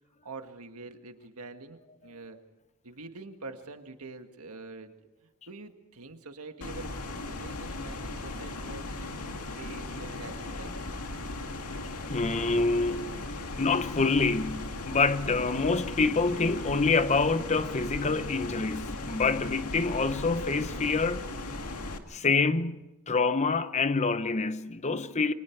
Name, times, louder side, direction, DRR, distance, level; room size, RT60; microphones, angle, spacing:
voice 1, 0.2-2.4 2.8-10.9, right 3 dB, 80° right, 1.8 m, -46 dB
sound 1, 6.6-22.0, left 2 dB, 90° left, 2.2 m, -37 dB
voice 2, 12.1-13.2 13.6-21.3 22.1-22.8 23.1-25.3, left 4 dB, 30° left, 0.8 m, -26 dB
28.5 x 24.5 x 4.6 m
head